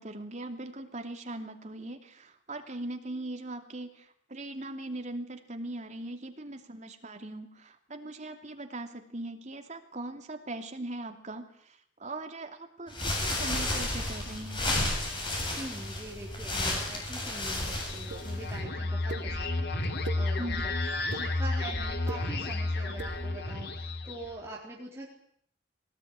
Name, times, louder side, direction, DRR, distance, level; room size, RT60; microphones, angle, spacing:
voice 1, 0.0-14.7 20.4-20.7, right 2 dB, 40° right, 5 dB, 2.8 m, -40 dB
sound 1, 12.9-18.6, left 1 dB, 25° left, 7.6 m, -32 dB
voice 2, 15.6-19.7 20.2-20.8 21.1-25.1, right 1 dB, 15° right, -3 dB, 4.1 m, -43 dB
sound 2, 17.8-24.4, left 2 dB, 60° left, 3.2 m, -32 dB
sound 3, 18.1-18.2 19.1-19.2 19.8-20.2 20.9-21.2 21.9-22.2 22.9-23.1, right 4 dB, 65° right, 2.5 m, -39 dB
22.0 x 19.0 x 9.7 m, 0.65 s
head